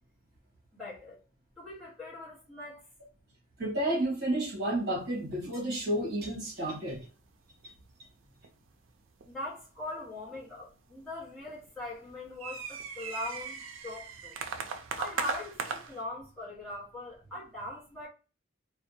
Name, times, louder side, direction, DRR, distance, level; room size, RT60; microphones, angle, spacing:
voice 1, 0.7-1.2 1.6-2.8 9.3-14.4 15.0-18.1, left 2 dB, ahead, 1.0 m, -41 dB
voice 2, 3.6-7.0, right 1 dB, 50° right, 1.1 m, -31 dB
sound 1, 5.0-5.5 5.8-5.9 6.2-6.5 6.7-7.1 7.3-7.9 8.4-8.5 9.2-9.6 10.3-11.2 11.5-16.0, right 5 dB, 80° right, 0.4 m, -38 dB
2.6 x 2.1 x 2.6 m
head